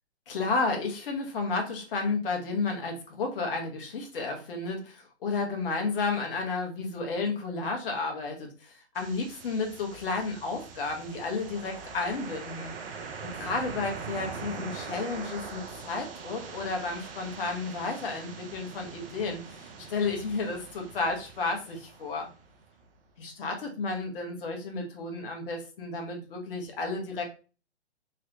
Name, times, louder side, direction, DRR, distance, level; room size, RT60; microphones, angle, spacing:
voice 1, 0.3-12.7 13.2-22.3 23.2-27.2, left 3 dB, 50° left, 2 dB, 1.0 m, -32 dB
sound 1, 9.0-22.8, right 5 dB, 55° right, 0.7 m, -42 dB
3.2 x 2.9 x 2.6 m, 0.35 s
hypercardioid pair, 145°, 35 cm